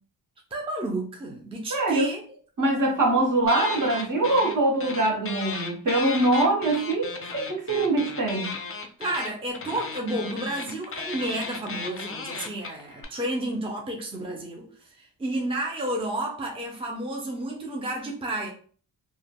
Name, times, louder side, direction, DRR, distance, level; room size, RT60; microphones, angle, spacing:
voice 1, 0.5-2.2 9.0-18.5, right 1 dB, 15° right, 0.6 m, -31 dB
voice 2, 1.7-2.1 2.6-8.6, right 2 dB, 50° right, 1.0 m, -23 dB
sound 1, 3.5-4.6 4.8-13.1, left 4 dB, 35° left, 0.6 m, -35 dB
3.2 x 2.2 x 2.2 m
cardioid pair, 70°, 40 cm